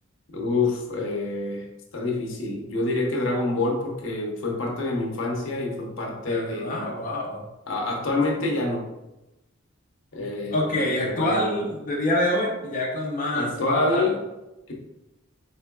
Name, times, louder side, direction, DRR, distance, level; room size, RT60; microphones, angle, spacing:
voice 1, 0.3-1.7 1.9-7.0 7.7-8.9 10.1-11.5 13.3-14.2 14.7-14.8, left 2 dB, 70° left, 1 dB, 0.8 m, -27 dB
voice 2, 6.3-7.4 10.5-14.1, left 1 dB, 40° left, -3 dB, 0.6 m, -26 dB
4.4 x 4.2 x 2.2 m, 0.97 s
head